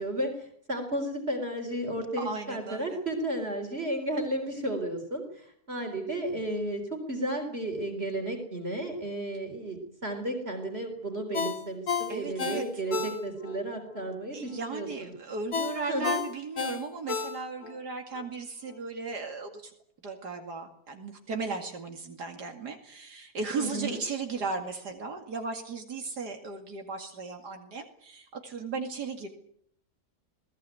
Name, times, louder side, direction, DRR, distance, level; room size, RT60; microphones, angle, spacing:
voice 1, 0.0-15.1 15.9-16.2 23.5-24.0, right 1 dB, 40° right, 4 dB, 4.2 m, -33 dB
voice 2, 2.2-3.0 12.1-12.7 14.3-19.7 20.0-29.3, right 4 dB, 80° right, 4 dB, 2.9 m, -36 dB
Ringtone, 11.3-13.6 14.0-14.1 15.5-17.8 18.1-18.3, left 6 dB, 65° left, 2.6 m, -32 dB
21.0 x 19.0 x 9.2 m, 0.68 s
omnidirectional pair, 1.7 m